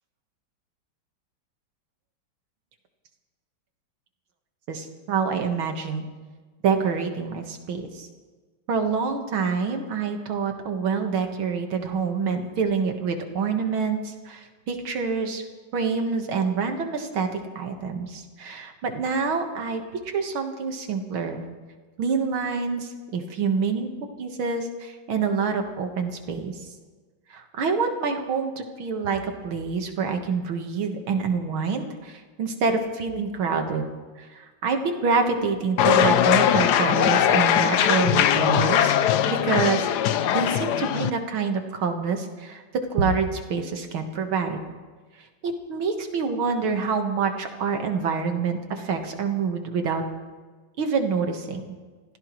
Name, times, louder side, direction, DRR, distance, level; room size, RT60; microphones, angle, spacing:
voice 1, 4.7-6.0 6.6-8.1 8.7-15.4 15.7-21.4 22.0-23.9 24.2-26.6 27.3-33.9 34.2-39.0 39.3-39.9 40.3-42.6 42.9-44.6 45.2-50.0 50.8-51.6, right 5 dB, 90° right, 5 dB, 2.4 m, -27 dB
sound 1, 35.8-41.1, left 10 dB, 70° left, 1.1 m, -20 dB
26.5 x 16.5 x 3.2 m, 1.4 s
omnidirectional pair, 2.2 m